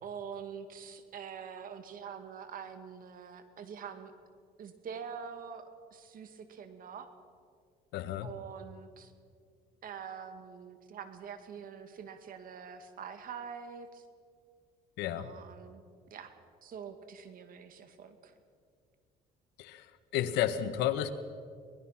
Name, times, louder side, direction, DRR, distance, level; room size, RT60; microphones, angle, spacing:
voice 1, 0.0-4.1 4.6-7.1 8.2-9.1 9.8-14.1 15.2-15.8 16.1-16.3 16.6-18.3, right 7 dB, 55° right, 9 dB, 2.1 m, -45 dB
voice 2, 7.9-8.3 15.0-15.3 19.6-19.9 20.1-21.1, left 11 dB, 90° left, 11 dB, 1.3 m, -31 dB
23.5 x 19.5 x 5.8 m, 2.2 s
cardioid pair, 110°, 17 cm